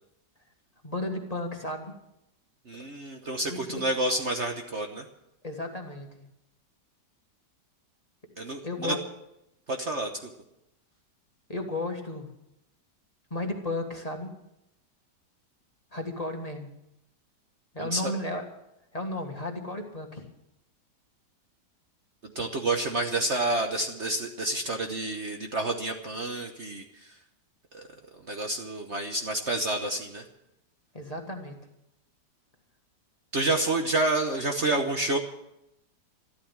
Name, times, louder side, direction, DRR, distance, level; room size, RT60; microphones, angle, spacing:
voice 1, 0.8-1.9 3.5-3.8 5.4-6.1 8.6-9.0 11.5-12.3 13.3-14.3 15.9-16.7 17.7-18.4 18.9-20.2 30.9-31.5, left 2 dB, 20° left, 3 dB, 1.7 m, -33 dB
voice 2, 2.6-5.1 8.4-9.0 9.7-10.3 17.8-18.1 22.2-27.2 27.7-30.2 33.3-35.2, right 2 dB, 45° right, 4 dB, 1.2 m, -29 dB
13.5 x 12.5 x 7.2 m, 0.84 s
omnidirectional pair, 1.9 m